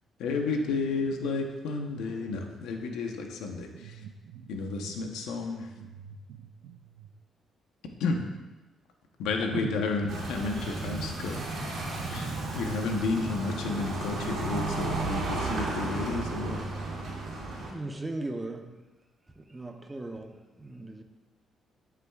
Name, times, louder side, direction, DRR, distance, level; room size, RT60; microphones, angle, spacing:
voice 1, 0.2-4.0 4.5-5.7 8.0-8.2 9.2-11.8 12.1-12.3 12.5-16.6, left 3 dB, 90° left, 3 dB, 0.9 m, -31 dB
voice 2, 3.7-4.5 4.8-4.9 5.8-7.1 9.5-9.7 10.8-10.9, right 9 dB, 90° right, 9 dB, 0.5 m, -43 dB
sound 1, 10.1-17.7, right 3 dB, 70° right, 2.2 m, -33 dB
voice 3, 17.7-18.7 19.4-21.0, right 2 dB, 20° right, 5 dB, 0.8 m, -38 dB
11.5 x 6.0 x 2.4 m, 1.2 s
cardioid pair, 90°, 0 cm